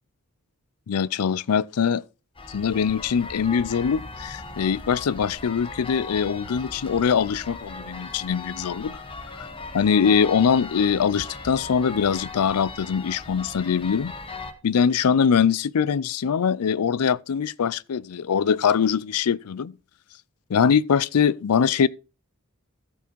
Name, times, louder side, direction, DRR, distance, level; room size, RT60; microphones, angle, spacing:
voice 1, 0.9-2.0 2.5-8.9 9.7-14.1 14.6-19.7 20.5-21.9, left 7 dB, 90° left, 0.4 m, -22 dB
sound 1, 2.4-14.5, left 3 dB, 25° left, 1.3 m, -38 dB
13.5 x 6.1 x 4.5 m
head